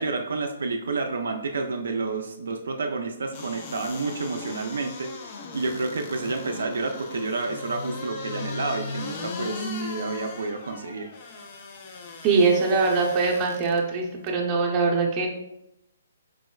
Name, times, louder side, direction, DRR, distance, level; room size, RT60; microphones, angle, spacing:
voice 1, 0.0-5.1 5.5-11.1, right 3 dB, 75° right, 4 dB, 0.3 m, -30 dB
sound 1, 3.3-13.8 14.3-14.4, left 2 dB, 40° left, 0.5 m, -37 dB
voice 2, 12.2-15.3, right 4 dB, 25° right, -1 dB, 0.7 m, -22 dB
4.6 x 2.0 x 2.2 m, 0.82 s
hypercardioid pair, 140°, 0 cm